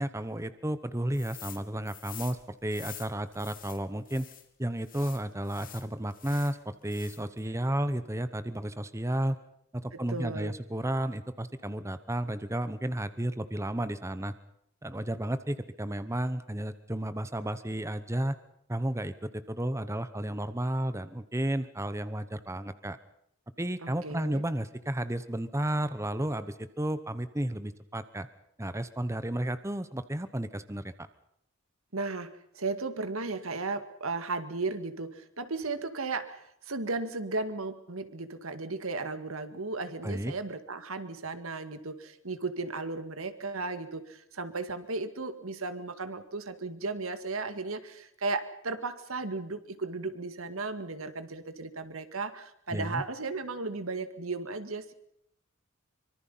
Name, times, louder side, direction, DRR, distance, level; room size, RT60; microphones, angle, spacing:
voice 1, 0.0-4.3 4.6-9.4 9.7-14.3 14.8-18.4 18.7-23.0 23.6-28.3 28.6-31.1 40.0-40.3 52.7-53.0, right 1 dB, 15° right, 12 dB, 0.9 m, -32 dB
sound 1, 1.1-1.6 1.9-4.4 4.8-6.6 6.9-7.4, left 12 dB, 40° left, 2.4 m, -47 dB
voice 2, 9.9-10.5 23.8-24.4 31.9-54.9, right 3 dB, 80° right, 10 dB, 2.0 m, -35 dB
25.0 x 24.0 x 5.6 m, 0.73 s
head